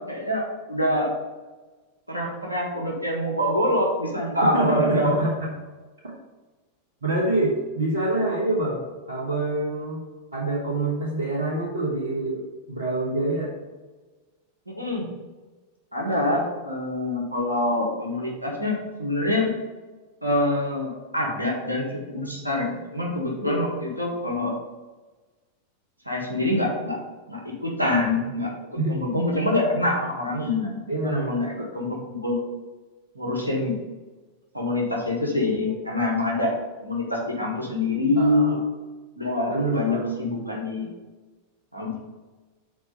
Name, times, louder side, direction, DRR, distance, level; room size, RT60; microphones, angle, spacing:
voice 1, 0.1-1.1 2.1-5.2 14.7-15.0 15.9-19.5 20.2-24.5 26.0-27.0 27.3-32.4 33.1-33.7 34.5-36.5 36.8-38.6 39.2-40.9 41.7-42.0, left 1 dB, 85° right, -2 dB, 1.5 m, -25 dB
voice 2, 4.4-5.5 7.0-10.0 10.3-12.4 12.7-13.5 16.1-16.4 23.4-23.6 28.7-29.0 30.9-31.4 35.6-35.8 38.2-38.6 39.5-40.1, right 2 dB, 70° right, -4 dB, 1.2 m, -26 dB
6.2 x 4.2 x 5.2 m, 1.3 s
figure-of-eight pair, 90°, 0 cm